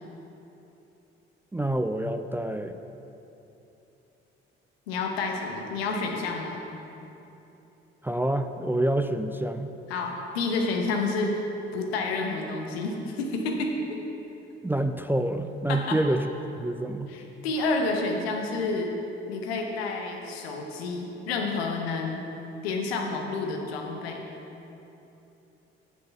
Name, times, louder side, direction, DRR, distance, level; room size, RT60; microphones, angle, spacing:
voice 1, 1.5-2.8 8.0-9.7 14.6-16.2 16.6-17.1, right 1 dB, 5° right, 8 dB, 0.3 m, -27 dB
voice 2, 4.9-6.6 9.9-11.4 11.7-13.8 15.7-16.0 17.1-18.9 19.3-22.2 22.6-24.2, left 3 dB, 80° left, 2 dB, 0.9 m, -29 dB
8.3 x 6.3 x 5.7 m, 3.0 s
figure-of-eight pair, 45°, 31 cm